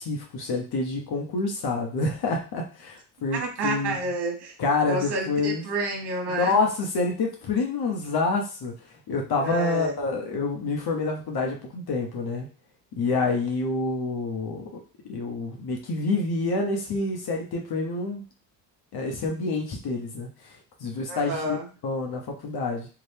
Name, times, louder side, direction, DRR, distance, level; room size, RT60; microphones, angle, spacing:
voice 1, 0.0-4.0 4.6-5.6 6.3-8.7 9.1-12.5 13.0-14.8 15.1-18.2 18.9-21.6 21.8-22.9, left 3 dB, 50° left, 1 dB, 0.9 m, -27 dB
voice 2, 3.3-4.5 4.9-6.6 9.4-9.9 21.1-21.7, right 2 dB, 50° right, 3 dB, 1.2 m, -29 dB
2.7 x 2.4 x 3.4 m, 0.35 s
supercardioid pair, 75°, 50 cm